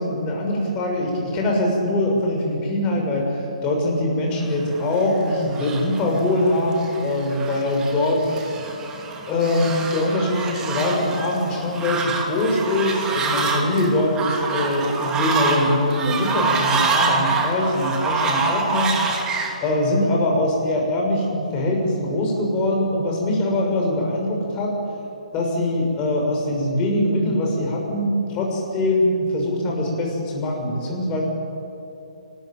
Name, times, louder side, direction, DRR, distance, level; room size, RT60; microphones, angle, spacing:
voice 1, 0.0-8.2 9.2-19.0 19.6-24.7 25.3-31.2, left 1 dB, 25° left, -1 dB, 6.4 m, -22 dB
Fowl, 4.7-19.6, right 4 dB, 15° right, 2.7 m, -26 dB
28.0 x 13.5 x 8.9 m, 2.9 s
figure-of-eight pair, 135°, 4 cm